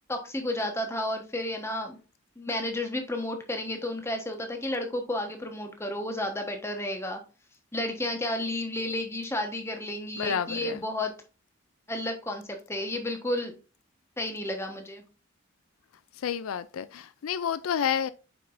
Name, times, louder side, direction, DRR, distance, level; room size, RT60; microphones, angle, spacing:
voice 1, 0.1-2.0 2.4-7.2 7.7-11.1 11.9-13.5 14.2-15.0, left 1 dB, 15° left, 1.2 m, -32 dB
voice 2, 10.2-10.8 16.1-18.1, left 8 dB, 90° left, 0.4 m, -30 dB
8.4 x 5.3 x 2.6 m
head